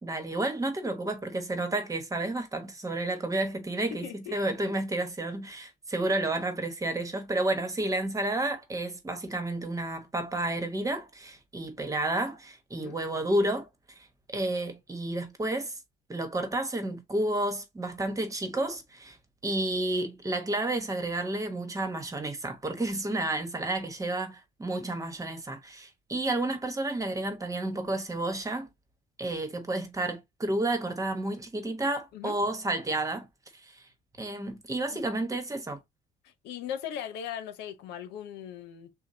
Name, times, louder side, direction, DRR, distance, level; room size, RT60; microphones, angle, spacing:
voice 1, 0.0-13.7 14.3-15.7 16.1-19.2 19.4-28.7 29.2-33.3 33.6-33.8 34.2-35.8, right 2 dB, 20° right, 1.2 m, -31 dB
voice 2, 3.9-4.4 12.7-13.0 32.1-32.5 34.9-35.0 36.2-38.9, left 9 dB, 85° left, 0.8 m, -39 dB
6.5 x 2.3 x 2.7 m
cardioid pair, 110°, 17 cm